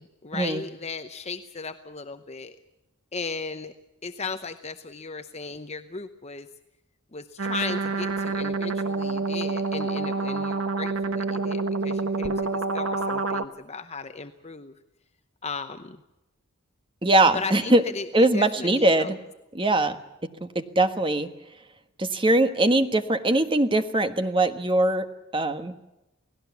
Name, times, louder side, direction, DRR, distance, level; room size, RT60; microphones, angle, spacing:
voice 1, 0.0-2.6 3.1-3.7 4.0-6.5 7.1-14.7 15.4-16.0 17.3-19.1, left 4 dB, 30° left, 8 dB, 0.8 m, -36 dB
sound 1, 7.4-13.4, right 3 dB, 70° right, 1.3 m, -27 dB
voice 2, 17.0-17.8 18.1-19.2 19.5-20.0 20.4-21.3 22.0-25.1 25.3-25.7, right 2 dB, 25° right, 8 dB, 1.4 m, -21 dB
29.0 x 18.0 x 7.1 m, 0.95 s
head